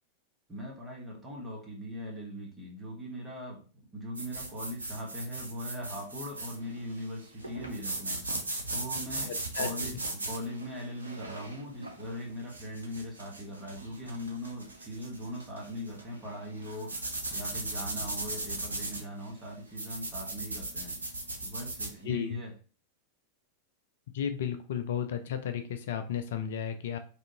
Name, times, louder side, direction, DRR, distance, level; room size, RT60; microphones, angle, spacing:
voice 1, 0.5-3.6 3.9-8.2 8.7-21.0 21.4-22.5, equal, 15° right, -2 dB, 1.2 m, -40 dB
sound 1, 4.1-21.9, right 2 dB, 80° right, 0.5 m, -38 dB
voice 2, 9.5-10.0 22.0-22.4 24.1-27.0, left 8 dB, 60° left, 7 dB, 0.3 m, -33 dB
3.4 x 2.5 x 2.7 m, 0.38 s
figure-of-eight pair, 90°, 0 cm